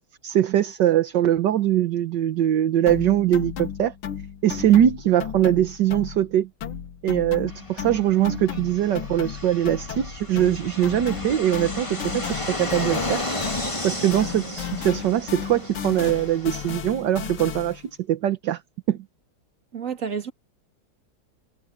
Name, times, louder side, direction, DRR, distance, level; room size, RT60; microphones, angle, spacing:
voice 1, 0.0-3.9 4.4-6.5 7.0-13.2 13.8-17.8 18.1-18.6 18.9-19.0, right 11 dB, 60° right, 1.5 m, -22 dB
sound 1, 2.9-6.3 6.6-13.9 14.1-17.9, left 9 dB, 80° left, 2.3 m, -35 dB
Fixed-wing aircraft airplane, 7.5-16.7, left 2 dB, 15° left, 2.4 m, -33 dB
voice 2, 19.7-20.3, right 6 dB, 40° right, 2.5 m, -29 dB
omnidirectional pair, 2.3 m